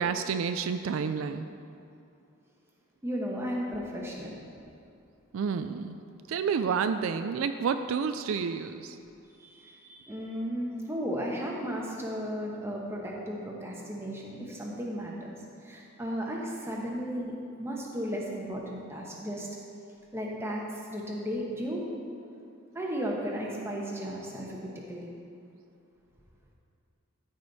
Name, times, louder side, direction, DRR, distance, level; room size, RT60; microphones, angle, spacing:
voice 1, 0.0-1.5 5.3-6.0 6.3-9.0, right 6 dB, 75° right, 9 dB, 0.3 m, -29 dB
voice 2, 3.0-4.3 9.4-19.5 20.1-21.8 22.7-25.1, equal, 10° right, -2 dB, 1.1 m, -35 dB
13.5 x 5.2 x 4.1 m, 2.5 s
head